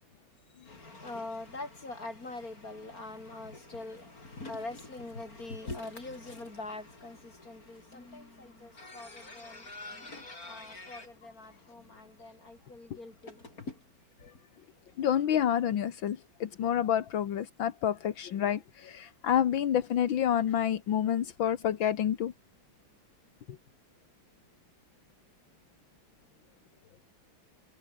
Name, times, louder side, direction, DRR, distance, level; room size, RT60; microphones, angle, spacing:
voice 1, 0.6-13.8 14.2-14.3, left 2 dB, 45° left, 5.3 m, -43 dB
voice 2, 15.0-22.3, left 10 dB, 80° left, 2.0 m, -28 dB
omnidirectional pair, 2.1 m